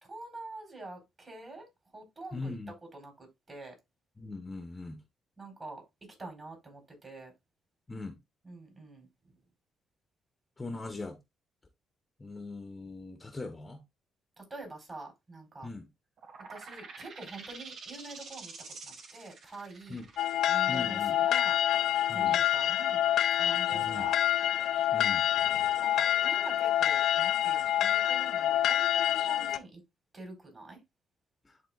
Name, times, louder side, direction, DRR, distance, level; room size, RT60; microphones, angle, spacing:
voice 1, 0.0-1.7 1.9-2.5 2.9-3.7 5.4-5.8 6.2-7.3 8.4-9.1 14.4-15.7 16.5-18.5 18.8-20.0 20.5-21.6 22.1-23.0 23.3-24.2 25.8-29.8 30.1-30.8, right 2 dB, 30° right, 4.4 m, -46 dB
voice 2, 2.3-2.7 4.2-5.0 7.9-8.2 10.6-11.2 12.2-13.8 15.6-15.9 19.9-20.0 20.7-21.2 22.1-22.4 23.7-24.1 24.9-25.3 31.4-31.6, left 3 dB, 20° left, 1.1 m, -40 dB
sound 1, 16.2-23.5, right 4 dB, 70° right, 2.0 m, -48 dB
sound 2, 20.2-29.6, left 11 dB, 75° left, 0.6 m, -27 dB
11.0 x 3.8 x 2.4 m
cardioid pair, 90°, 0 cm